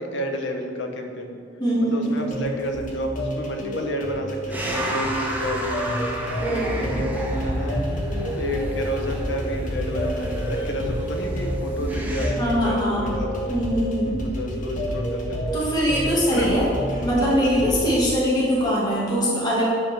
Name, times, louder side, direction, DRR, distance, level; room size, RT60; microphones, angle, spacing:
voice 1, 0.0-1.4 1.8-6.1 6.5-8.0 8.3-13.6 14.1-15.6 16.3-16.6, equal, 65° left, 2 dB, 1.1 m, -31 dB
voice 2, 1.6-2.1 6.4-6.9 12.4-13.1 13.5-14.2 15.5-16.7 17.0-19.6, equal, 20° left, -7 dB, 2.1 m, -22 dB
sound 1, 2.0-17.8, equal, 45° left, 1.8 m, -29 dB
sound 2, 4.5-12.3, right 1 dB, 10° right, 1.1 m, -30 dB
9.9 x 5.2 x 6.1 m, 2.4 s
head